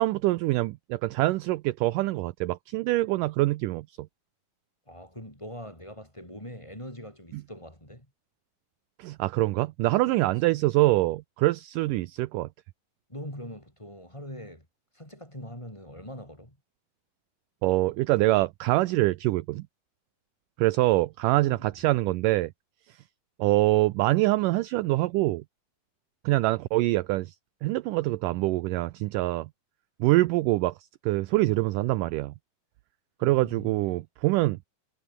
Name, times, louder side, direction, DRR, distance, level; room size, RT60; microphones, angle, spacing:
voice 1, 0.0-4.1 7.3-7.4 9.0-12.5 17.6-19.7 20.6-22.5 23.4-25.4 26.3-27.3 27.6-29.5 30.0-30.7 31.0-32.3 33.2-34.7, right 19 dB, 80° right, 1.9 m, -25 dB
voice 2, 4.9-8.1 10.7-10.8 13.1-14.7 14.9-16.6 21.4-21.8 33.2-34.0, equal, 5° left, 6.0 m, -42 dB
omnidirectional pair, 4.4 m